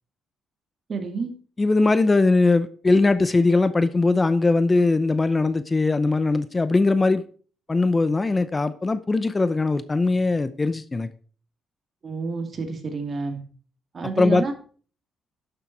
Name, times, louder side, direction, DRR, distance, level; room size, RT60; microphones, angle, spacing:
voice 1, 0.9-1.3 12.0-13.4 13.9-14.5, right 4 dB, 45° right, 2.6 m, -29 dB
voice 2, 1.6-7.2 7.7-11.1 14.2-14.5, left 3 dB, 25° left, 0.7 m, -20 dB
11.5 x 6.8 x 4.6 m
cardioid pair, 90°, 0 cm